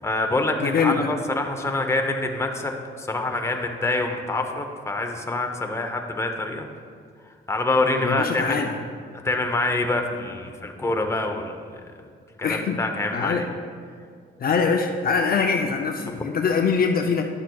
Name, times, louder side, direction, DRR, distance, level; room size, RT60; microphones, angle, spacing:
voice 1, 0.0-6.7 7.5-8.8 9.2-11.8 12.4-13.5, left 2 dB, 15° left, 3 dB, 0.8 m, -26 dB
voice 2, 0.6-1.1 8.0-8.8 12.4-12.8 13.1-13.4 14.4-17.3, left 5 dB, 50° left, 3 dB, 0.6 m, -23 dB
10.5 x 7.3 x 2.3 m, 2.1 s
cardioid pair, 90°, 20 cm